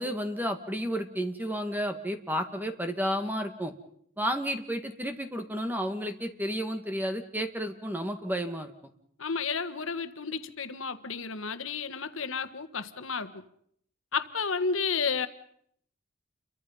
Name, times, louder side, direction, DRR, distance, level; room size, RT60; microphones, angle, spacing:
voice 1, 0.0-3.7 4.2-8.7, equal, 10° right, 7 dB, 1.9 m, -32 dB
voice 2, 9.2-13.4 14.1-15.3, left 5 dB, 80° left, 10 dB, 1.5 m, -32 dB
29.5 x 23.5 x 5.4 m, 0.68 s
head